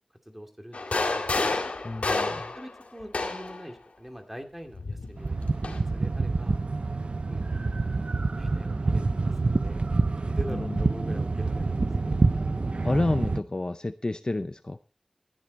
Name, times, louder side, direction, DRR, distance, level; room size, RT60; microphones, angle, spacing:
voice 1, 0.3-1.3 2.5-5.4 5.6-6.6 7.3-7.5 8.4-12.1, equal, 10° right, 4 dB, 2.3 m, -43 dB
sound 1, 0.7-3.6 4.7-5.8, left 3 dB, 85° left, 2.0 m, -29 dB
voice 2, 1.8-2.4 10.5-10.8 12.8-14.8, left 2 dB, 35° left, 11 dB, 0.5 m, -29 dB
sound 2, 5.2-13.4, right 3 dB, 55° right, 0.5 m, -27 dB
14.0 x 10.0 x 4.1 m, 0.35 s
wide cardioid pair, 60°, 2 cm